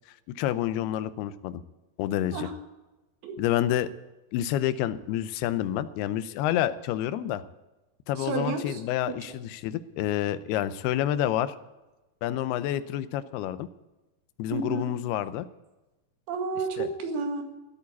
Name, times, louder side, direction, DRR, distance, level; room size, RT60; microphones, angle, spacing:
voice 1, 0.3-1.6 2.0-2.5 3.4-3.9 4.3-7.4 8.1-11.5 12.2-13.7 14.4-15.5 16.8-16.9, left 12 dB, 80° left, 13 dB, 2.7 m, -28 dB
voice 2, 8.2-8.8 14.5-14.9 16.3-17.4, right 4 dB, 75° right, 4 dB, 3.8 m, -31 dB
15.0 x 8.8 x 8.4 m, 1.1 s
omnidirectional pair, 4.6 m